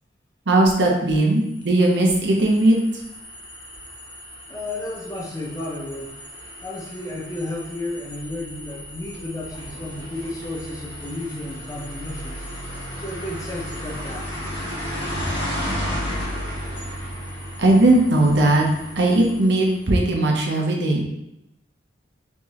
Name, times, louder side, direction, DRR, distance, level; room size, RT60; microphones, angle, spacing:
voice 1, 0.5-2.8 17.6-18.6 19.0-21.0, right 1 dB, 65° right, 0 dB, 0.8 m, -18 dB
sound 1, 1.4-20.0, equal, 65° left, 1.5 m, -34 dB
voice 2, 4.5-6.1 6.6-12.4 13.0-14.2, left 1 dB, 20° left, -3 dB, 0.7 m, -32 dB
4.3 x 3.1 x 3.0 m, 0.85 s
head